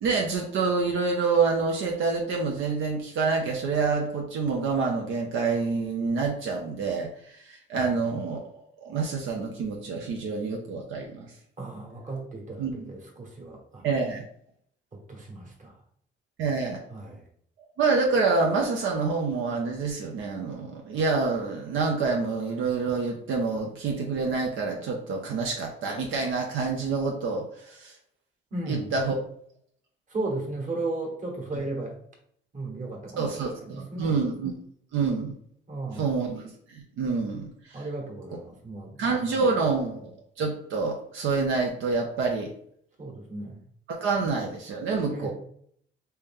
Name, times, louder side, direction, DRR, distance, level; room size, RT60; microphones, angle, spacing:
voice 1, 0.0-8.4 8.8-11.3 12.6-12.9 13.8-14.2 16.4-16.8 17.8-27.9 28.7-29.2 31.5-31.6 33.2-34.5 34.9-35.3 35.9-36.4 36.7-37.8 39.0-40.0 40.4-42.5 43.9-45.3, right 4 dB, 80° right, 1 dB, 0.7 m, -27 dB
voice 2, 11.6-13.9 14.9-15.7 16.9-17.2 28.5-28.9 30.1-31.9 32.5-33.3 33.7-34.2 35.7-36.0 37.7-39.4 43.0-43.6 44.2-44.3 45.1-45.3, right 2 dB, 40° right, 0 dB, 1.3 m, -35 dB
3.3 x 2.8 x 3.6 m, 0.65 s
cardioid pair, 90°, 20 cm